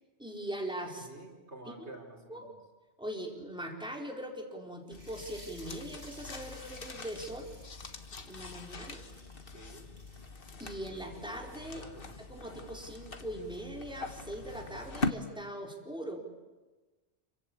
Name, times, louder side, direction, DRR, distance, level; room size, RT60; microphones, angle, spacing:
voice 1, 0.2-1.1 1.8-1.9 2.3-2.5 3.0-7.5 8.3-9.1 10.6-16.2, right 1 dB, 5° right, 0 dB, 4.3 m, -41 dB
voice 2, 1.0-2.5 9.5-9.9 11.8-12.0, right 2 dB, 85° right, 3 dB, 4.3 m, -49 dB
sound 1, 4.9-15.1, left 3 dB, 55° left, 1.6 m, -42 dB
sound 2, 4.9-10.4, right 1 dB, 70° right, 8.1 m, -56 dB
27.0 x 24.5 x 8.7 m, 1.2 s
omnidirectional pair, 1.1 m